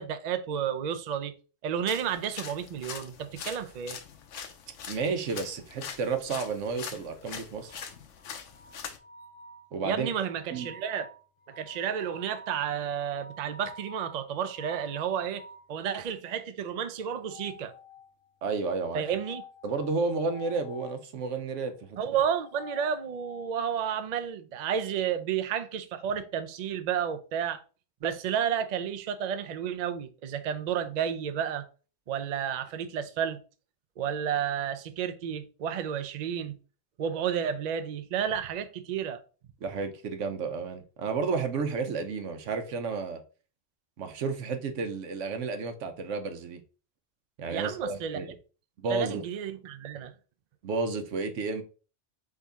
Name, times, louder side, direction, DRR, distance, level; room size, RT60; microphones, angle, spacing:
voice 1, 0.0-1.3 1.6-4.0 9.8-11.1 11.5-15.4 15.7-17.7 18.9-19.4 22.0-27.6 28.0-31.7 32.1-33.4 34.0-36.6 37.0-39.2 47.5-48.2 48.8-50.1, right 8 dB, 55° right, 0.5 m, -31 dB
sound 1, 1.9-9.0, left 7 dB, 75° left, 1.0 m, -43 dB
voice 2, 4.9-7.8 9.7-10.1 10.5-10.7 18.4-19.0 19.6-22.0 39.6-43.2 44.0-46.6 47.4-48.4 48.8-49.2 50.6-51.6, right 4 dB, 85° right, 1.1 m, -31 dB
sound 2, 7.6-15.7 17.0-18.3 19.0-21.0 22.2-23.6, left 2 dB, 55° left, 0.7 m, -50 dB
4.1 x 3.7 x 3.5 m
omnidirectional pair, 1.2 m